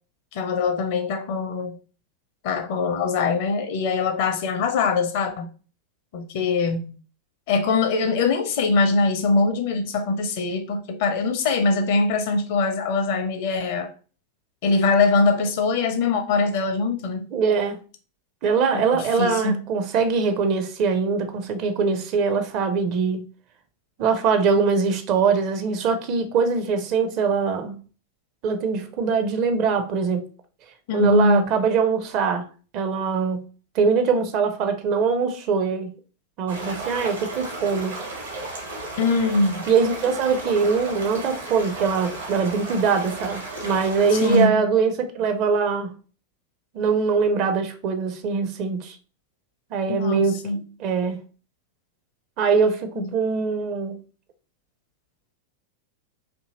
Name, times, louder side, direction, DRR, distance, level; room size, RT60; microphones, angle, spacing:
voice 1, 0.3-1.8 2.4-5.5 6.1-7.0 7.5-13.9 14.6-17.3 18.7-19.6 30.9-31.4 39.0-39.7 44.1-44.6 49.9-50.6 53.0-53.1, left 3 dB, 50° left, 0.5 m, -22 dB
voice 2, 17.3-17.8 18.4-23.2 24.0-27.8 28.4-30.2 30.9-32.5 32.7-33.4 33.7-35.9 36.4-38.0 39.7-46.0 46.7-49.0 49.7-50.4 50.8-51.2 52.4-54.0, right 5 dB, 40° right, 0.5 m, -22 dB
sound 1, 36.5-44.5, right 2 dB, 70° right, 1.1 m, -34 dB
2.6 x 2.6 x 2.8 m
figure-of-eight pair, 90°, 0 cm